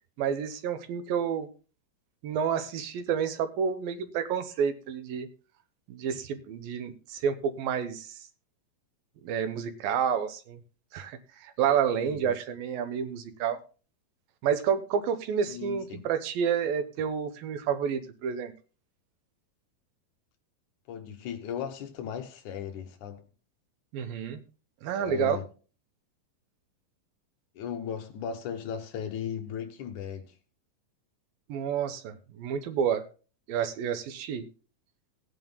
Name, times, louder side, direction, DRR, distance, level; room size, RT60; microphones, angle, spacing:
voice 1, 0.2-1.5 2.2-5.3 5.9-8.2 9.2-10.6 10.9-13.6 14.4-18.5 23.9-24.4 24.8-25.4 31.5-33.1 33.5-34.5, right 7 dB, 90° right, 2.8 m, -29 dB
voice 2, 15.5-16.1 20.9-23.3 25.0-25.5 27.6-30.3, left 8 dB, 70° left, 2.2 m, -37 dB
18.5 x 9.2 x 2.2 m
omnidirectional pair, 4.0 m